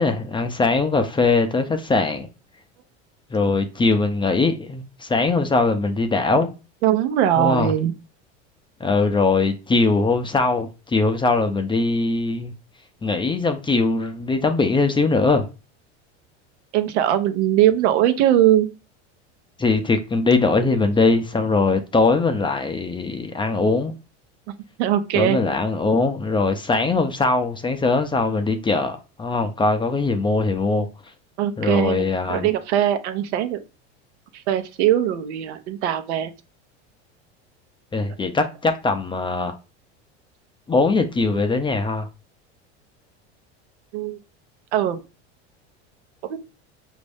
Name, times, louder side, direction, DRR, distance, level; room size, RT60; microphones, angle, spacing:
voice 1, 0.0-2.3 3.3-6.5 7.4-7.7 8.8-12.5 13.0-15.5 19.6-23.9 25.1-30.9 31.6-32.5 37.9-39.6 40.7-42.1, left 3 dB, 15° left, 0.5 m, -21 dB
voice 2, 6.8-7.9 16.7-18.7 24.8-25.4 31.4-33.6 34.5-36.3 43.9-44.2 44.7-45.0 46.3-46.4, right 11 dB, 80° right, 0.8 m, -20 dB
5.1 x 2.6 x 3.4 m
supercardioid pair, 100°, 34 cm